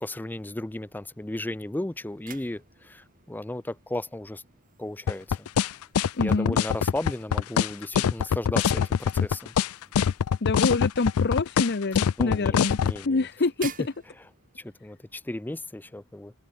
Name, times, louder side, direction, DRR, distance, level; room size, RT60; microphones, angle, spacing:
voice 1, 0.0-4.4 4.8-5.5 6.2-9.5 12.2-13.3 13.8-13.9 14.2-14.3 14.6-16.3, left 1 dB, 10° left, 0.5 m, -35 dB
sound 1, 1.9-14.9, right 8 dB, 40° right, 5.1 m, -51 dB
sound 2, 5.1-13.0, left 7 dB, 75° left, 0.4 m, -23 dB
voice 2, 6.2-6.6 10.4-12.8 13.0-13.9, left 3 dB, 50° left, 0.8 m, -26 dB
head